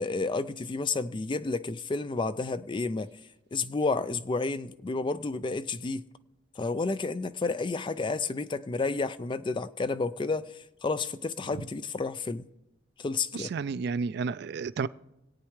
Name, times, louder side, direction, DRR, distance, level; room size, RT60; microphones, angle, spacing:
voice 1, 0.0-3.1 3.5-6.1 6.6-12.5 13.0-13.5, left 3 dB, 25° left, 0.4 m, -31 dB
voice 2, 13.3-14.9, right 5 dB, 60° right, 0.3 m, -31 dB
25.5 x 8.8 x 3.2 m
head